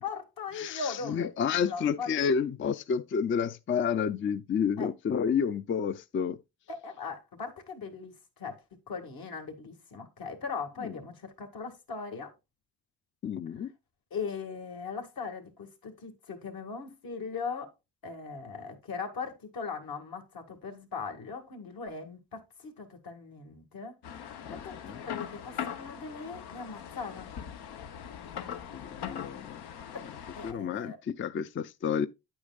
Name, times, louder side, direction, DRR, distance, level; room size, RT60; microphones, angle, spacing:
voice 1, 0.0-2.2 4.8-4.9 6.7-8.6 8.9-12.3 14.1-17.7 18.0-23.9 24.6-27.3 29.9-30.1 30.3-31.0, left 5 dB, 65° left, 2.1 m, -39 dB
voice 2, 0.6-6.4 10.8-10.9 13.2-13.7 24.5-25.0 28.5-29.6 30.4-32.1, left 7 dB, 35° left, 0.4 m, -30 dB
sound 1, 24.0-30.5, left 8 dB, 85° left, 0.9 m, -41 dB
9.5 x 8.6 x 2.4 m
cardioid pair, 100°, 38 cm